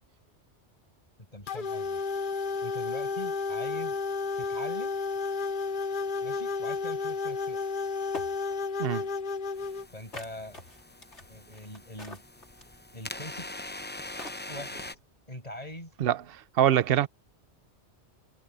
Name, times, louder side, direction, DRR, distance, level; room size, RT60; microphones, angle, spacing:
voice 1, 1.3-2.0 2.6-4.0 4.4-5.0 6.2-7.6 9.9-10.6 11.3-12.2 12.9-13.5 14.5-14.8 15.3-15.9, left 1 dB, 35° left, 6.6 m, -42 dB
sound 1, 1.5-9.9, left 4 dB, 50° left, 1.0 m, -32 dB
sound 2, 7.6-7.7 8.1-8.6 10.1-12.8 13.8-13.9 14.2-15.0, left 1 dB, 90° left, 4.1 m, -44 dB
sound 3, 9.5-14.9, left 2 dB, 10° left, 0.5 m, -43 dB
voice 2, 16.0-17.1, right 11 dB, 60° right, 0.9 m, -25 dB
omnidirectional pair, 1.1 m